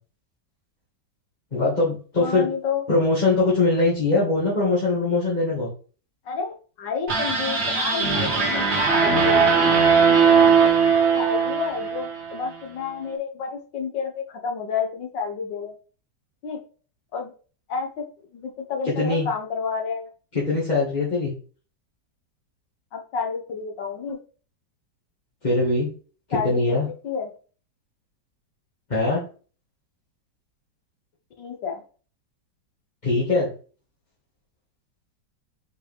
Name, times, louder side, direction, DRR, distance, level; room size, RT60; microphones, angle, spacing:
voice 1, 1.5-2.5 2.9-5.7 19.0-19.3 20.3-21.3 25.4-25.9 26.3-26.9 28.9-29.2 33.0-33.5, left 2 dB, 25° left, -7 dB, 1.8 m, -22 dB
voice 2, 2.2-2.8 6.3-9.6 10.3-10.7 11.1-15.8 16.4-16.6 17.1-17.3 17.7-18.0 18.3-20.1 22.9-24.2 26.3-26.8 27.0-27.3 31.4-31.8, left 5 dB, 80° left, 2 dB, 1.8 m, -30 dB
sound 1, 7.1-12.4, right 5 dB, 40° right, 1.4 m, -19 dB
5.9 x 4.6 x 3.4 m, 0.38 s
omnidirectional pair, 1.9 m